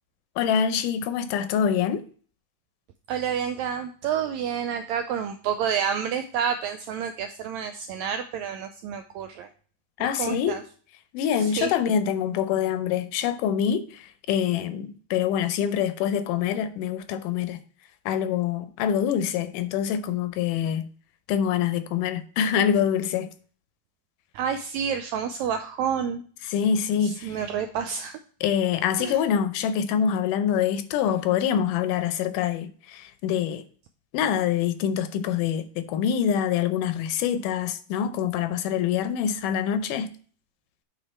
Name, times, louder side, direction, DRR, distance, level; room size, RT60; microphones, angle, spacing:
voice 1, 0.4-2.0 10.0-10.6 11.1-17.6 18.1-20.9 21.3-23.3 26.5-27.4 28.4-33.6 34.1-40.1, left 8 dB, 85° left, 2.2 m, -25 dB
voice 2, 3.1-9.5 10.0-10.6 11.3-11.7 24.3-26.5 27.0-28.2 29.0-29.2, right 7 dB, 85° right, 1.6 m, -29 dB
8.2 x 3.9 x 4.2 m
omnidirectional pair, 3.7 m